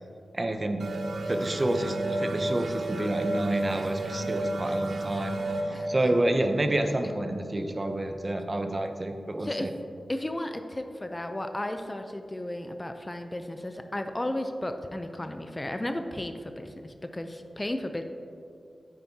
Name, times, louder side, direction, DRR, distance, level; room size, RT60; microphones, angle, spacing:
voice 1, 0.3-0.9 1.3-5.4 5.7-9.7, right 1 dB, 35° right, 6 dB, 0.6 m, -29 dB
sound 1, 0.8-8.1, right 1 dB, 75° right, 0.7 m, -32 dB
voice 2, 5.7-6.2 9.4-9.7 10.1-18.0, left 1 dB, 25° left, 7 dB, 0.5 m, -34 dB
9.4 x 8.7 x 2.8 m, 2.4 s
wide cardioid pair, 70°, 0 cm